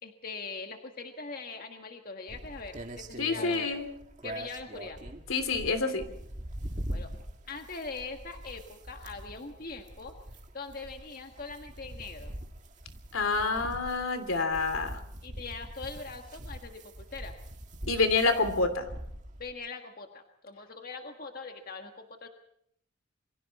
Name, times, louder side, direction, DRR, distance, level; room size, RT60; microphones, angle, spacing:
voice 1, 0.0-3.8 4.2-5.0 6.9-7.1 7.5-10.2 10.5-12.3 15.2-17.3 19.4-22.3, left 4 dB, 45° left, 4 dB, 1.7 m, -42 dB
sound 1, 2.3-19.5, right 1 dB, 35° right, 1.9 m, -43 dB
voice 2, 3.2-3.9 5.3-6.0 13.1-15.0 17.9-18.9, left 3 dB, 80° left, 8 dB, 3.0 m, -27 dB
28.0 x 23.0 x 4.3 m, 0.68 s
head